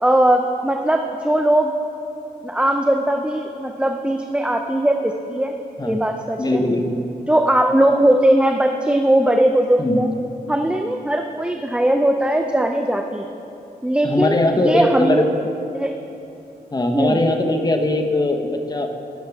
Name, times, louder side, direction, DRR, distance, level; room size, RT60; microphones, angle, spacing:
voice 1, 0.0-1.7 2.4-5.5 5.8-6.6 7.3-10.1 10.5-13.3 13.8-15.2 15.7-15.9 16.9-17.2, right 1 dB, 5° right, 4 dB, 0.5 m, -19 dB
voice 2, 6.4-7.0 9.8-10.1 14.0-15.3 16.7-18.9, left 1 dB, 25° left, 5 dB, 0.9 m, -20 dB
15.0 x 6.5 x 3.5 m, 2.8 s
cardioid pair, 65°, 16 cm